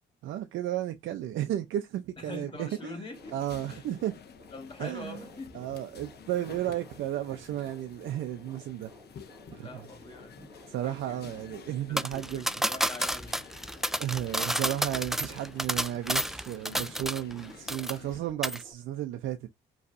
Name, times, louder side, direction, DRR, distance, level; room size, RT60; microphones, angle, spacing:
voice 1, 0.2-3.0 3.3-4.1 4.8-5.2 5.5-8.9 9.5-9.9 10.7-12.7 14.0-19.5, right 12 dB, 80° right, 0.6 m, -33 dB
voice 2, 2.2-3.4 3.7-3.8 4.5-5.7 9.6-10.4 10.7-11.2 11.9-13.5, left 2 dB, 25° left, 2.4 m, -44 dB
sound 1, 2.6-18.7, equal, 20° right, 2.1 m, -56 dB
sound 2, 3.1-18.2, left 7 dB, 55° left, 1.0 m, -51 dB
sound 3, 12.0-17.4 17.7-18.2 18.4-18.6, equal, ahead, 0.3 m, -30 dB
5.2 x 3.2 x 2.6 m
cardioid pair, 90°, 20 cm